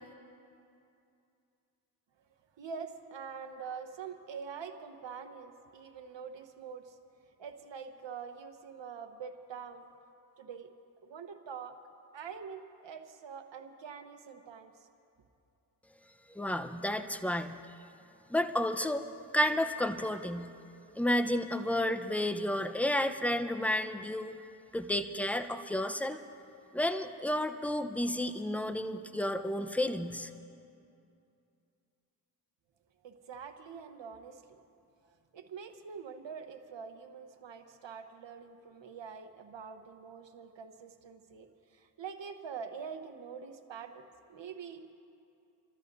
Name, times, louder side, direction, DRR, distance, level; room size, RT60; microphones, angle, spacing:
voice 1, 2.6-7.0 7.4-9.9 10.4-10.7 11.0-11.8 12.1-14.7 33.0-34.6 35.3-44.9, right 6 dB, 75° right, 7 dB, 1.2 m, -45 dB
voice 2, 16.3-17.6 18.3-19.1 19.3-20.5 21.0-24.4 24.7-26.2 26.7-30.3, left 1 dB, 5° left, 7 dB, 0.8 m, -31 dB
27.5 x 13.5 x 2.7 m, 2.6 s
cardioid pair, 45°, 44 cm